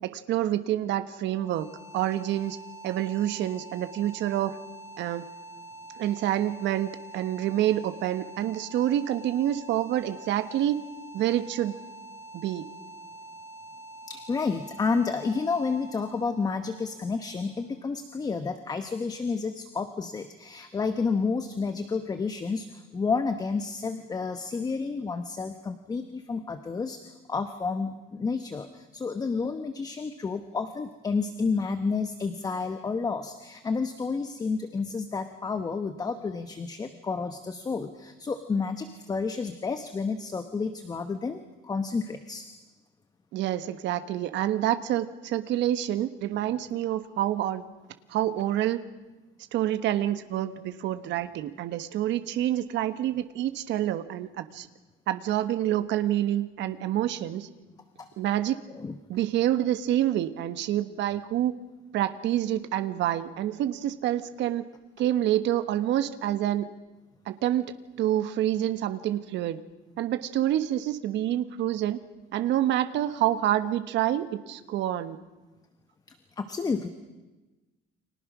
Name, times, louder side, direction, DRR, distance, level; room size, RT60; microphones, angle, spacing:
voice 1, 0.0-1.7 1.9-2.6 2.8-4.6 5.0-5.2 6.0-10.8 11.1-11.7 12.3-12.6 43.3-47.6 48.1-48.8 49.5-54.7 55.1-57.5 58.2-58.6 59.1-61.5 61.9-64.6 65.0-66.7 67.3-67.7 68.0-69.6 70.0-72.0 72.3-75.2, right 12 dB, 65° right, 11 dB, 1.4 m, -27 dB
sound 1, 1.3-18.2, right 2 dB, 10° right, 3.7 m, -46 dB
voice 2, 14.1-27.0 27.3-42.4 58.0-58.1 58.7-59.0 76.4-76.9, left 4 dB, 20° left, 9 dB, 1.0 m, -30 dB
30.0 x 25.0 x 6.2 m, 1.1 s
cardioid pair, 180°, 20 cm